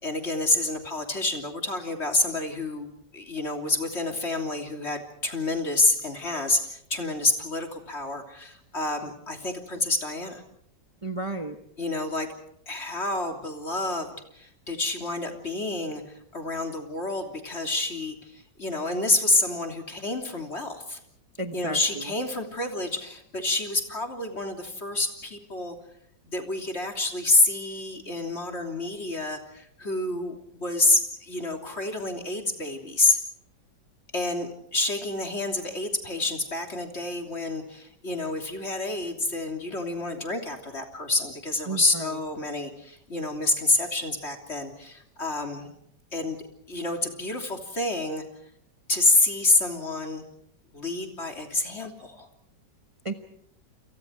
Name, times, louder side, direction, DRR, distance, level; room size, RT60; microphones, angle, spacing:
voice 1, 0.0-10.4 11.8-12.3 12.7-21.0 21.5-25.8 26.3-33.2 34.1-45.7 46.1-46.4 46.7-48.2 48.9-50.2 50.7-52.3, left 2 dB, 35° left, 3 dB, 3.4 m, -28 dB
voice 2, 11.0-11.6 21.4-22.1 41.7-42.2 53.0-53.1, right 2 dB, 20° right, 6 dB, 1.1 m, -33 dB
28.5 x 28.5 x 4.7 m, 0.69 s
omnidirectional pair, 1.9 m